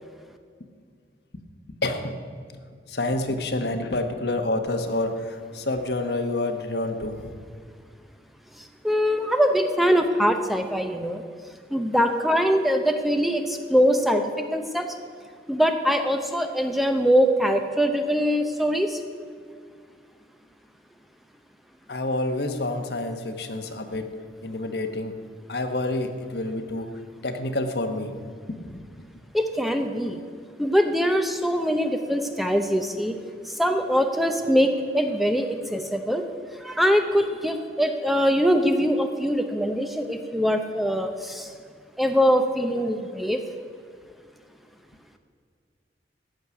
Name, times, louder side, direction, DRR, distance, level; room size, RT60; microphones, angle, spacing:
voice 1, 1.8-2.2 2.9-7.4 21.9-24.1 24.4-25.2 25.5-26.9 27.2-28.2 28.6-28.8, left 2 dB, 65° left, 7 dB, 1.2 m, -28 dB
voice 2, 8.6-11.2 11.7-15.0 15.5-19.0 29.3-30.2 30.6-33.2 33.4-36.2 36.6-41.5 42.0-43.4, equal, ahead, 6 dB, 0.7 m, -23 dB
14.5 x 6.5 x 9.5 m, 2.1 s
head